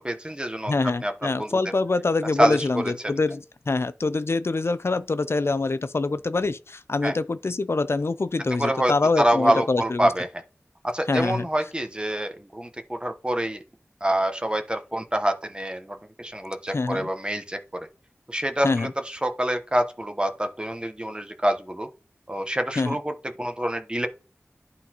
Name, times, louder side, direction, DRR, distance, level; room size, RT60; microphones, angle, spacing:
voice 1, 0.0-0.7 1.0-1.6 2.4-2.8 7.0-7.1 8.5-8.9 9.2-10.4 10.8-13.6 14.0-17.9 18.3-21.9 22.3-24.1, right 1 dB, 20° right, 1.0 m, -26 dB
voice 2, 0.7-10.1 11.1-11.5 16.7-17.1 18.6-18.9 22.8-23.0, left 3 dB, 60° left, 0.4 m, -25 dB
12.0 x 4.0 x 2.9 m
wide cardioid pair, 50°, 5 cm